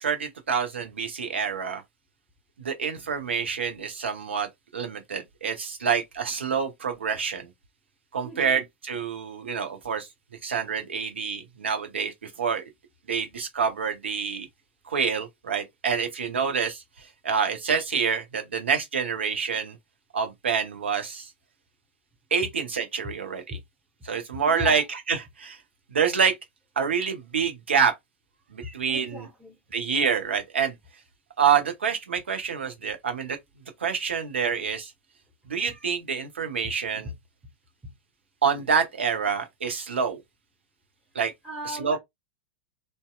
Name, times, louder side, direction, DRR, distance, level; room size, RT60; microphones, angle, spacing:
voice 1, 0.0-1.8 2.6-4.5 4.7-7.5 8.1-10.1 10.4-12.6 13.1-14.5 14.9-19.8 20.1-21.3 22.3-23.6 24.0-25.6 25.9-26.3 26.8-27.9 28.5-29.2 29.7-30.7 31.4-33.4 33.8-34.9 35.5-37.1 38.4-40.2 41.1-41.3 41.8-42.0, right 6 dB, 75° right, 0.7 m, -27 dB
voice 2, 24.4-24.8 28.6-29.6 36.6-36.7 37.0-37.1 37.8-37.9 41.4-42.0, left 1 dB, 5° right, 0.7 m, -37 dB
2.7 x 2.1 x 2.3 m
figure-of-eight pair, 95°, 6 cm